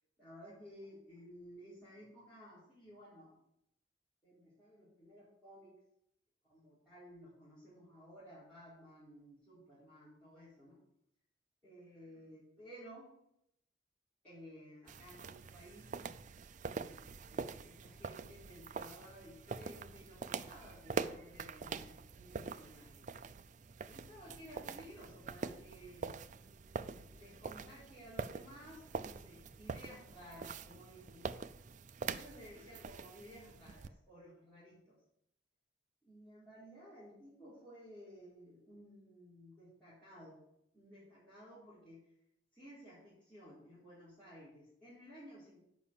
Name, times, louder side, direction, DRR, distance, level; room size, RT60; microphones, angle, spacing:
voice 1, 0.2-3.4 4.2-5.7 6.5-10.8 11.6-13.1 14.2-15.9 16.7-23.1 23.9-26.2 27.1-31.3 32.0-35.0 36.0-40.4 40.7-42.0 42.5-45.6, equal, 10° left, -13 dB, 4.5 m, -55 dB
sound 1, 14.9-33.9, right 5 dB, 45° right, 0.4 m, -45 dB
8.7 x 5.8 x 7.1 m, 0.76 s
head